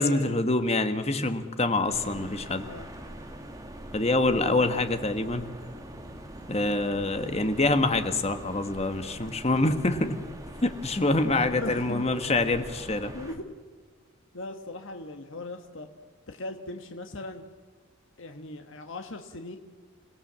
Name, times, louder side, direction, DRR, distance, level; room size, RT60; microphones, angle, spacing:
voice 1, 0.0-2.7 3.9-5.5 6.5-10.2 10.6-13.1, left 2 dB, 30° left, 9 dB, 1.4 m, -26 dB
sound 1, 1.9-13.4, right 1 dB, 15° right, 2.1 m, -43 dB
voice 2, 11.5-12.0 13.1-13.5 14.3-15.9 16.3-17.5 18.2-19.6, left 2 dB, 60° left, 6 dB, 1.4 m, -39 dB
28.5 x 18.0 x 7.5 m, 1.5 s
head